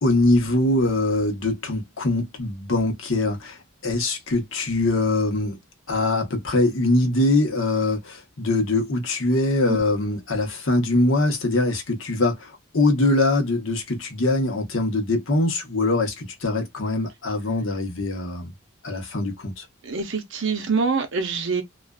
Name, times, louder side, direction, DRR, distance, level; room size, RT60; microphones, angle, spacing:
voice 1, 0.0-5.6 5.9-18.5 18.8-19.6, left 2 dB, 65° left, 0.9 m, -23 dB
voice 2, 19.8-21.6, right 4 dB, 60° right, 0.6 m, -25 dB
2.4 x 2.3 x 2.2 m
head